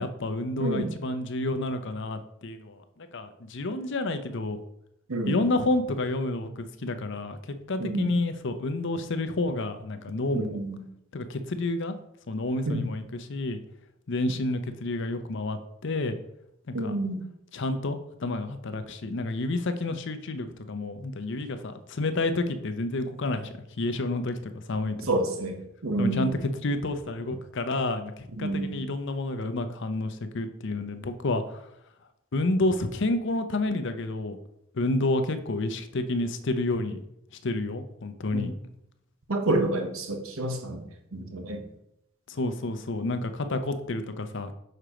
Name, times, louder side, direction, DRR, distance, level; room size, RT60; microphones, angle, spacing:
voice 1, 0.0-4.6 5.3-10.6 11.1-12.0 12.3-13.6 14.1-16.2 16.7-17.0 17.5-25.1 26.0-31.7 32.3-34.4 34.7-37.0 37.4-38.5 42.3-44.5, left 2 dB, 60° left, 9 dB, 0.7 m, -29 dB
voice 2, 0.6-0.9 5.1-5.4 7.8-8.1 10.3-10.8 12.7-12.9 16.7-17.2 25.1-26.3 28.4-28.8 38.3-38.5 39.3-41.7, right 2 dB, 85° right, 4 dB, 1.1 m, -29 dB
6.7 x 4.5 x 5.0 m, 0.78 s
head